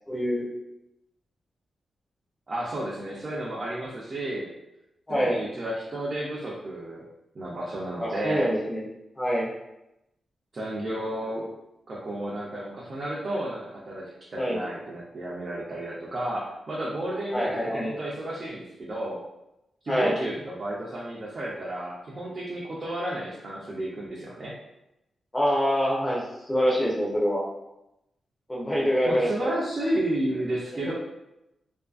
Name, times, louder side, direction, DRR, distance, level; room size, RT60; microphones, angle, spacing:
voice 1, 0.1-0.4 5.1-5.4 8.0-8.8 9.2-9.5 14.4-14.6 17.3-17.9 19.9-20.1 25.3-27.4 28.5-29.5 30.8-30.9, equal, 15° left, -5 dB, 0.6 m, -25 dB
voice 2, 2.5-4.5 5.1-7.0 7.3-8.5 10.5-11.5 11.9-19.2 19.8-24.5 29.0-30.9, right 1 dB, 35° right, -6 dB, 0.4 m, -32 dB
2.6 x 2.5 x 2.3 m, 0.89 s
wide cardioid pair, 170°, 0 cm